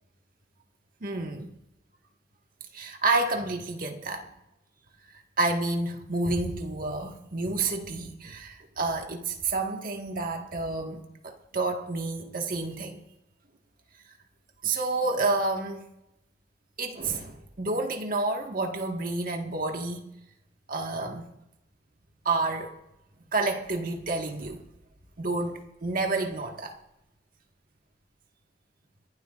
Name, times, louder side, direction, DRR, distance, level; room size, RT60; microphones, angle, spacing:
voice 1, 1.0-1.5 2.7-4.3 5.4-13.0 14.6-15.8 16.8-20.0 20.7-21.3 22.2-22.7 23.3-24.6 25.2-26.8, right 3 dB, 50° right, 1.7 m, -29 dB
26.0 x 12.0 x 2.5 m
head